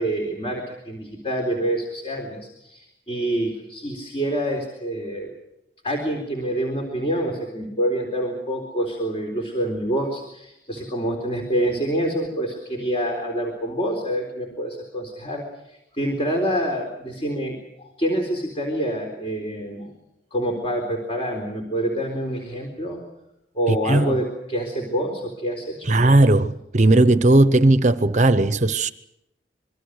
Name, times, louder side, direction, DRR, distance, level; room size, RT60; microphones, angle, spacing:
voice 1, 0.0-5.3 5.8-19.9 20.3-23.0 23.6-26.0, right 1 dB, 35° left, 3.9 m, -27 dB
voice 2, 23.7-24.1 25.9-28.9, right 2 dB, 40° right, 0.9 m, -17 dB
26.0 x 23.0 x 6.5 m
head